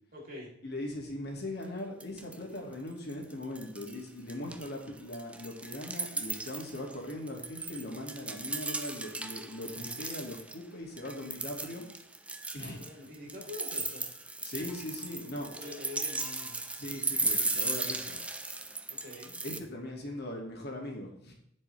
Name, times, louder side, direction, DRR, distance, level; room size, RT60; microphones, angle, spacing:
voice 1, 0.1-0.5 12.6-14.1 15.5-16.6 18.9-19.4, left 2 dB, 45° right, -3 dB, 3.7 m, -45 dB
voice 2, 0.6-11.8 12.5-12.8 14.4-15.5 16.7-18.2 19.4-21.3, left 1 dB, 55° left, 0 dB, 2.2 m, -40 dB
sound 1, 1.6-1.7 2.0-2.6 2.9-4.0 4.3-10.6 11.0-19.6, right 3 dB, 5° right, 0.5 m, -36 dB
16.0 x 5.4 x 3.3 m, 0.73 s
head